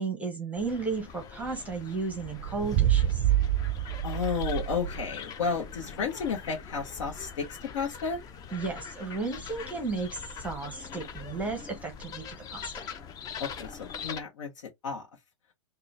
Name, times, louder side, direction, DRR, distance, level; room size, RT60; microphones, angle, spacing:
voice 1, 0.0-3.2 8.5-12.9, right 4 dB, 10° right, 0.9 m, -34 dB
sound 1, 0.6-14.2, left 6 dB, 25° left, 0.5 m, -43 dB
sound 2, 2.4-5.2, right 12 dB, 35° right, 0.4 m, -27 dB
voice 2, 4.0-8.2 13.4-14.5 14.8-15.0, left 5 dB, 70° left, 0.9 m, -32 dB
3.8 x 2.2 x 3.2 m
hypercardioid pair, 130°, 16 cm